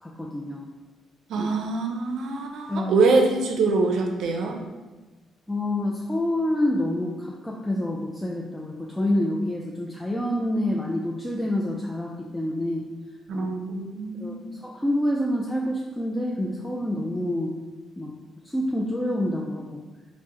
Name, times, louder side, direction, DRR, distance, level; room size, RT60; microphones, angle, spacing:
voice 1, 0.0-0.6 1.4-1.5 2.7-3.0 5.5-12.8 13.3-13.5 14.2-17.5 18.0-18.1 18.4-19.8, left 1 dB, 10° left, -2 dB, 0.3 m, -27 dB
voice 2, 1.3-4.6 13.3-14.6, right 3 dB, 75° right, 3 dB, 0.4 m, -24 dB
3.4 x 2.0 x 2.9 m, 1.2 s
cardioid pair, 90°, 0 cm